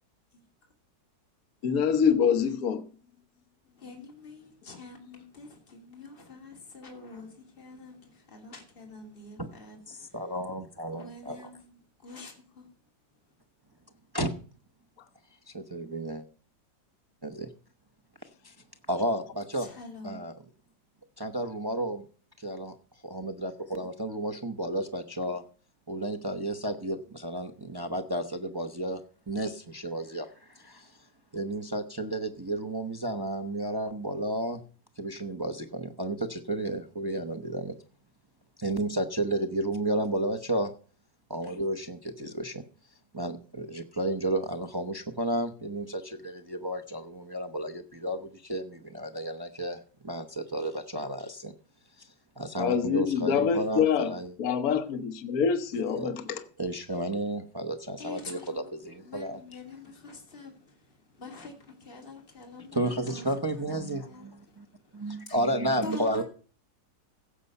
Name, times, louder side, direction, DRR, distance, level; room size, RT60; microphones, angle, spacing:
voice 1, 0.3-0.7 3.8-10.3 10.9-12.7 19.5-20.2 58.0-58.7 59.0-65.4 65.8-66.2, left 3 dB, 30° left, 2.8 m, -46 dB
voice 2, 1.6-2.9 52.6-54.1 54.4-56.4, left 7 dB, 55° left, 1.4 m, -25 dB
voice 3, 9.9-11.4 14.1-14.3 15.5-16.2 17.2-17.5 18.4-18.5 18.9-19.7 20.0-20.3 21.2-22.0 22.4-22.7 23.0-25.4 25.9-29.0 29.3-30.9 31.3-34.6 35.0-37.7 38.6-40.7 41.3-42.6 43.1-51.5 52.0-52.1 52.4-54.3 56.0-56.1 56.6-59.4 62.7-64.7 64.9-66.2, right 1 dB, 25° right, 0.5 m, -32 dB
16.5 x 6.9 x 5.4 m
omnidirectional pair, 2.0 m